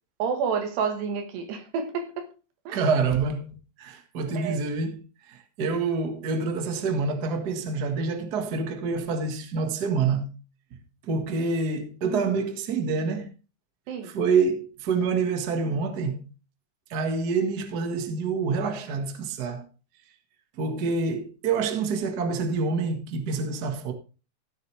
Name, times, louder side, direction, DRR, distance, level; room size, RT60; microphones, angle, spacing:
voice 1, 0.2-2.3 2.7-2.8 4.3-4.6 12.0-12.3 13.9-14.1, right 6 dB, 90° right, 3.6 m, -29 dB
voice 2, 2.7-5.0 5.3-10.3 10.7-10.8 11.1-13.3 14.0-16.2 16.9-19.6 20.6-23.9, right 4 dB, 65° right, 0.9 m, -27 dB
15.5 x 8.1 x 3.4 m
omnidirectional pair, 4.7 m